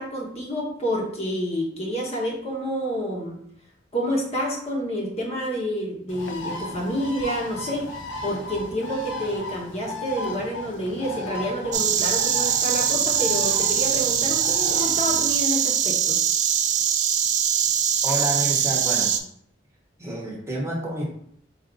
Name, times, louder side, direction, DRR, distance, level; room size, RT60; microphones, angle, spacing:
voice 1, 0.0-3.4 3.9-7.9 8.2-16.2, equal, 35° left, -2 dB, 0.9 m, -28 dB
Bird, 6.1-15.4, left 2 dB, 85° left, 0.6 m, -36 dB
Insect, 11.7-19.2, right 8 dB, 40° right, 0.4 m, -22 dB
voice 2, 18.0-19.2 20.0-21.0, right 1 dB, 15° right, -4 dB, 1.0 m, -29 dB
4.6 x 2.5 x 3.8 m, 0.68 s
head